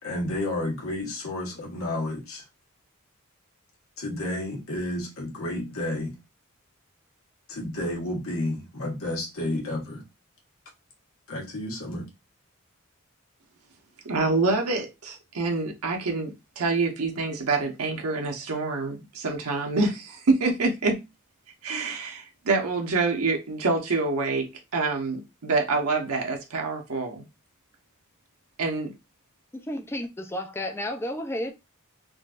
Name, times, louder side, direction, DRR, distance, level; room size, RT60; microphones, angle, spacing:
voice 1, 0.0-2.4 4.0-6.1 7.5-10.0 11.3-12.0, left 1 dB, 70° left, 1.3 m, -31 dB
voice 2, 14.0-21.0 21.6-27.2 28.6-28.9, right 3 dB, 85° right, 0.8 m, -26 dB
voice 3, 29.5-31.5, left 1 dB, 10° left, 0.5 m, -32 dB
3.7 x 2.5 x 2.3 m
head